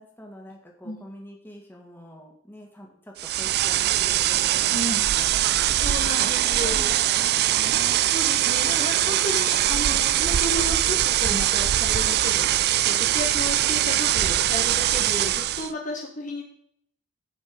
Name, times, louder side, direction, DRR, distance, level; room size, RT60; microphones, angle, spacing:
voice 1, 0.0-8.0, equal, 10° left, 0 dB, 2.2 m, -44 dB
sound 1, 3.2-15.7, right 13 dB, 45° right, 0.3 m, -22 dB
voice 2, 4.7-5.0 5.8-7.0 7.8-16.4, left 1 dB, 35° left, 0 dB, 1.5 m, -33 dB
14.5 x 5.4 x 5.3 m, 0.68 s
head